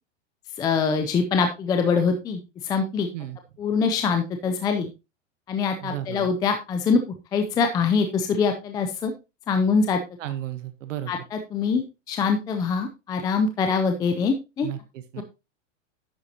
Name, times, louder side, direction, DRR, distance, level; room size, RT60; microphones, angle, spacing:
voice 1, 0.6-3.1 3.6-4.9 5.5-7.0 7.3-9.1 9.5-10.0 11.1-14.7 15.2-15.3, left 5 dB, 10° left, 6 dB, 0.5 m, -24 dB
voice 2, 5.8-6.3 10.2-11.1 14.6-15.2, right 12 dB, 70° right, 11 dB, 1.1 m, -34 dB
10.5 x 7.9 x 2.8 m, 0.26 s
supercardioid pair, 155°, 38 cm